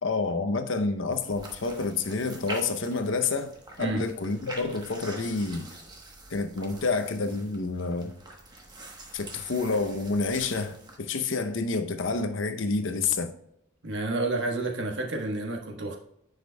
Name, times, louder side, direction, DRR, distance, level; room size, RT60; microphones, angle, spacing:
voice 1, 0.0-3.5 3.8-5.7 6.3-8.1 9.1-13.3, left 3 dB, 75° left, 0.7 m, -28 dB
sound 1, 1.1-11.0, right 2 dB, 20° right, 1.0 m, -45 dB
voice 2, 13.8-16.0, right 2 dB, 65° right, 1.3 m, -30 dB
10.0 x 5.1 x 2.2 m
head